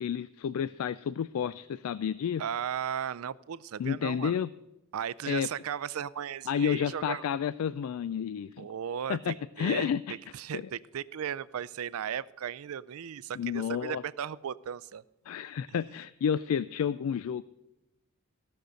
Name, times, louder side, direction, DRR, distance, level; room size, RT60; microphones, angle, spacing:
voice 1, 0.0-2.4 3.8-4.5 5.3-5.5 6.5-8.7 9.1-10.2 10.5-10.6 13.4-14.0 15.3-17.4, left 8 dB, 80° left, 17 dB, 0.3 m, -30 dB
voice 2, 2.4-4.3 4.9-7.2 8.6-15.0, right 8 dB, 80° right, 19 dB, 0.4 m, -36 dB
16.0 x 6.6 x 6.3 m, 1.0 s
head